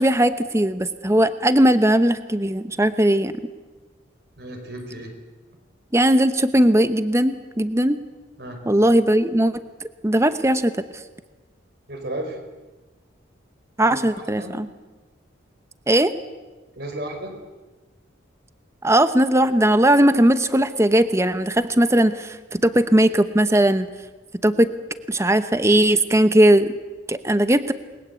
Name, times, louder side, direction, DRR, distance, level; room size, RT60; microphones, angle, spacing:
voice 1, 0.0-3.3 5.9-8.0 8.7-9.5 10.0-10.7 13.8-14.7 15.9-16.1 18.8-23.9 24.4-24.7 25.1-26.7 27.1-27.7, right 1 dB, 15° right, 11 dB, 0.9 m, -18 dB
voice 2, 4.4-5.1 8.4-8.6 11.9-12.4 13.9-14.6 16.7-17.3, right 1 dB, 55° right, 4 dB, 5.1 m, -34 dB
29.0 x 21.0 x 8.4 m, 1.2 s
head